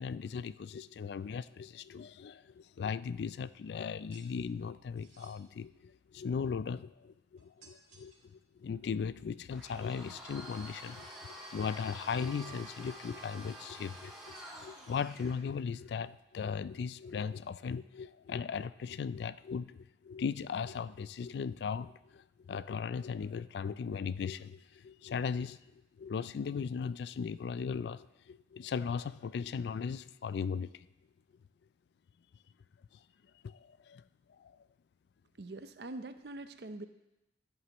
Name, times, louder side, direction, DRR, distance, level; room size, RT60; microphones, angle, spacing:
voice 1, 0.0-8.1 8.6-14.4 14.6-25.6 26.0-30.9 33.4-33.6 33.9-34.0 34.4-34.5, left 6 dB, 70° left, 17 dB, 0.3 m, -38 dB
sound 1, 4.1-4.3 5.0-5.4 7.4-8.3, right 4 dB, 45° right, 2.7 m, -60 dB
Domestic sounds home sounds, 9.5-15.4, right 1 dB, 5° right, 2.3 m, -48 dB
voice 2, 35.4-36.8, right 2 dB, 65° right, 10 dB, 0.6 m, -44 dB
13.0 x 11.0 x 3.0 m, 0.96 s
head